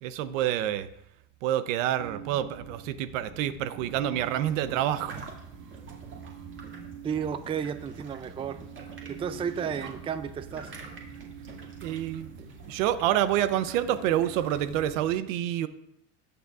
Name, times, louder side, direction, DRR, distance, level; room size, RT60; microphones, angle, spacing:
voice 1, 0.0-0.9 1.4-5.3 11.8-12.3 12.7-15.7, right 11 dB, 90° right, 13 dB, 0.8 m, -28 dB
sound 1, 2.0-15.1, right 7 dB, 70° right, 1.5 m, -45 dB
sound 2, 4.3-14.8, right 3 dB, 30° right, 2.1 m, -48 dB
voice 2, 7.0-8.6 9.1-10.7, right 7 dB, 15° right, 11 dB, 0.3 m, -32 dB
19.0 x 6.9 x 2.4 m, 0.76 s
supercardioid pair, 120°, 38 cm